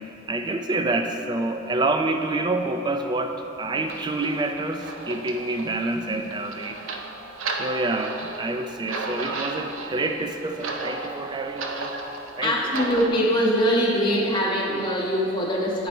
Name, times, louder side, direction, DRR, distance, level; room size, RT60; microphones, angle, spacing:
voice 1, 0.3-6.8 7.6-12.0 12.4-12.6, right 2 dB, 20° right, 6 dB, 0.3 m, -27 dB
sound 1, 3.9-13.1, right 3 dB, 80° right, 0.6 m, -34 dB
voice 2, 12.4-15.9, equal, 20° left, -4 dB, 0.8 m, -23 dB
9.3 x 4.0 x 4.4 m, 3.0 s
head